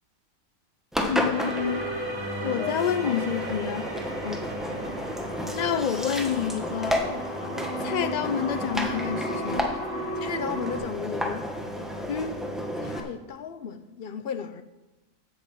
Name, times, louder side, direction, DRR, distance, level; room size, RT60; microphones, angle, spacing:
Engine, 0.9-13.0, equal, ahead, 1.0 m, -32 dB
voice 1, 1.1-2.0 2.4-3.9 5.5-7.0 7.8-9.7 12.1-12.4, left 8 dB, 70° left, 0.4 m, -28 dB
sound 1, 1.3-10.8, right 1 dB, 45° right, 2.9 m, -35 dB
voice 2, 4.2-4.5 10.2-11.5 12.8-14.6, left 7 dB, 55° left, 0.8 m, -35 dB
8.6 x 7.9 x 7.6 m
omnidirectional pair, 1.5 m